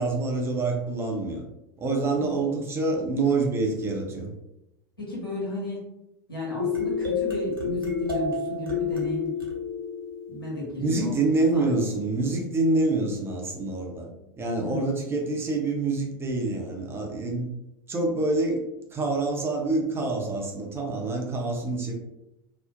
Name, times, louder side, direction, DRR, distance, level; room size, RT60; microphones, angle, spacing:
voice 1, 0.0-1.4 1.8-4.3 10.8-14.1 14.4-17.5 17.9-18.6 18.9-21.9, right 2 dB, 20° right, 1 dB, 0.6 m, -26 dB
voice 2, 5.0-5.9 6.3-9.4 10.3-11.2 11.5-11.8 13.9-14.2 14.6-15.0, left 1 dB, 85° left, -6 dB, 1.0 m, -34 dB
sound 1, 6.6-11.0, left 5 dB, 80° right, 0.6 m, -29 dB
2.5 x 2.0 x 2.5 m, 0.89 s
figure-of-eight pair, 80°, 12 cm